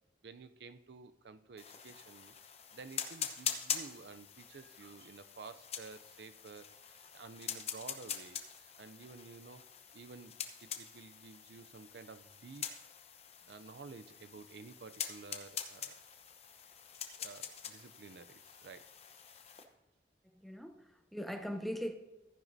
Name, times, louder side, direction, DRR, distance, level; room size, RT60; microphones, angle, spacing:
voice 1, 0.2-2.4 2.7-9.6 9.9-10.3 10.6-12.7 13.4-16.0 17.1-19.0, right 4 dB, 65° right, 0.5 m, -52 dB
sound 1, 1.6-19.6, left 8 dB, 35° left, 0.8 m, -44 dB
voice 2, 20.2-21.9, equal, ahead, 0.5 m, -40 dB
14.0 x 10.0 x 2.7 m
head